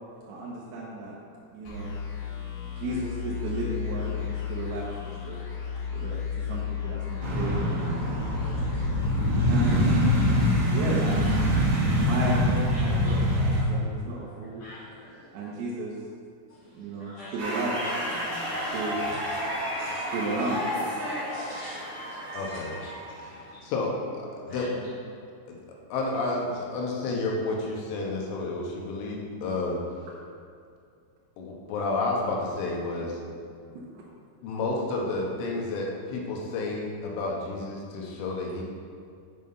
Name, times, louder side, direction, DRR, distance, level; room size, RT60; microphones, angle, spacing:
voice 1, 0.3-1.2 1.5-2.0 2.8-5.5 5.9-6.2 6.5-7.7 9.5-9.9 10.6-11.4 11.9-14.6 15.3-15.9 16.7-17.8 18.0-18.3 18.7-19.0 20.1-20.6 33.9-34.0, right 2 dB, 75° right, -5 dB, 2.4 m, -33 dB
sound 1, 1.6-11.9, left 8 dB, 55° left, 3.4 m, -34 dB
sound 2, 7.2-13.6, equal, 55° right, 2.7 m, -24 dB
voice 2, 12.7-13.2 14.6-15.2 17.0-17.3 19.1-20.1 20.8-22.3 22.5-22.6 23.2-23.6 24.5-24.6, left 1 dB, 70° left, -8 dB, 1.9 m, -47 dB
sound 3, 17.4-23.5, equal, 40° right, 2.4 m, -32 dB
voice 3, 22.3-22.8 23.6-24.9 25.5-25.6 25.9-29.8 31.4-33.2 34.4-38.6, left 2 dB, 90° left, -2 dB, 3.7 m, -30 dB
8.3 x 5.6 x 5.5 m, 2.2 s
omnidirectional pair, 5.4 m